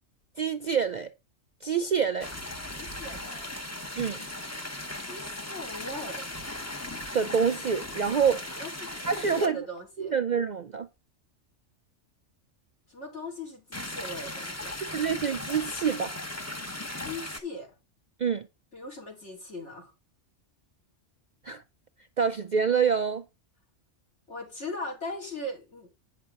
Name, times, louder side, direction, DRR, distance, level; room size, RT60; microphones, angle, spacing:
voice 1, 0.4-1.1 1.6-2.3 4.0-4.2 7.1-8.4 9.1-9.7 10.0-10.9 14.9-16.2 18.2-18.5 21.4-21.6 22.2-23.2, right 6 dB, 55° right, 0.5 m, -26 dB
sound 1, 2.2-9.5 13.7-17.4, left 1 dB, 15° left, 0.9 m, -38 dB
voice 2, 2.7-3.5 5.0-6.3 8.1-10.1 12.9-14.8 17.0-17.7 18.7-19.9 24.3-25.9, left 1 dB, 70° left, 3.7 m, -39 dB
9.0 x 6.0 x 3.6 m
omnidirectional pair, 1.2 m